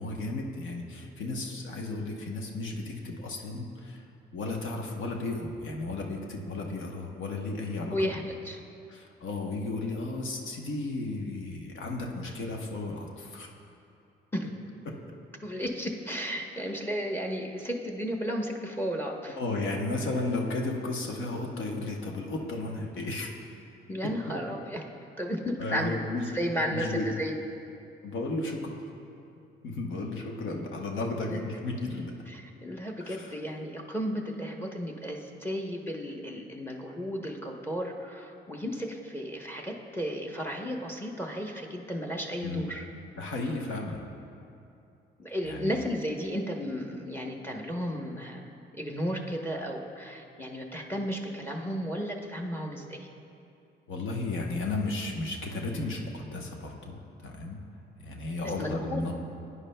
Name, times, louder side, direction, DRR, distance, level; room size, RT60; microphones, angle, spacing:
voice 1, 0.0-4.0 4.3-8.2 8.9-13.5 19.4-23.3 25.6-26.4 26.7-27.1 28.0-28.8 29.6-32.1 33.0-33.3 42.4-42.7 43.2-44.0 45.4-45.7 53.9-57.6 58.0-59.1, left 2 dB, 80° left, 1 dB, 1.0 m, -34 dB
voice 2, 7.9-8.6 14.3-14.5 15.4-19.4 23.9-24.8 25.2-26.0 26.3-27.3 31.2-31.4 32.3-42.8 45.2-53.1 58.4-59.1, equal, 10° left, 1 dB, 0.9 m, -34 dB
15.0 x 9.6 x 2.2 m, 2.7 s
cardioid pair, 90°, 20 cm